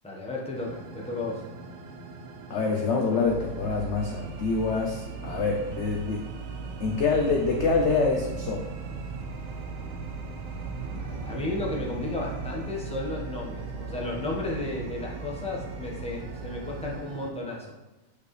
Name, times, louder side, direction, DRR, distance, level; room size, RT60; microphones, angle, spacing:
voice 1, 0.0-1.4 11.0-17.7, left 2 dB, 5° left, -3 dB, 1.1 m, -33 dB
sound 1, 0.5-17.3, right 3 dB, 60° right, 1.0 m, -43 dB
voice 2, 2.5-6.2 6.8-8.7, left 4 dB, 55° left, 0 dB, 0.8 m, -26 dB
sound 2, 3.2-17.0, right 4 dB, 85° right, 1.4 m, -38 dB
8.6 x 5.0 x 3.3 m, 1.1 s
omnidirectional pair, 1.8 m